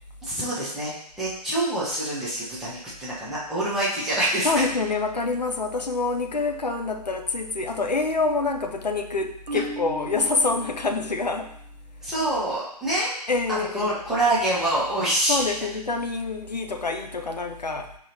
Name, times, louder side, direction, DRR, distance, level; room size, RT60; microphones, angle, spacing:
voice 1, 0.2-4.7 12.0-13.1 13.5-15.4, right 1 dB, ahead, -10 dB, 0.4 m, -26 dB
voice 2, 4.4-11.5 13.3-13.9 15.3-17.9, left 3 dB, 85° left, 5 dB, 0.5 m, -26 dB
Marimba xylophone, 9.5-11.5, right 1 dB, 90° right, 0.5 m, -37 dB
4.8 x 2.9 x 2.7 m, 0.70 s
figure-of-eight pair, 130°, 21 cm